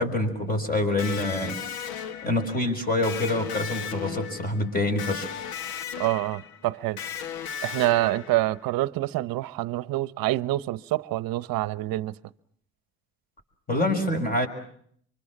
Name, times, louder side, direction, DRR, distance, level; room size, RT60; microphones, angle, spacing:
voice 1, 0.0-1.6 2.2-5.3 13.7-14.5, left 2 dB, 20° left, 5.9 m, -26 dB
Electric guitar, 1.0-8.7, left 8 dB, 60° left, 1.6 m, -36 dB
voice 2, 6.0-7.0 7.6-12.2, right 17 dB, 60° right, 1.0 m, -26 dB
24.5 x 24.5 x 7.4 m
supercardioid pair, 105°, 39 cm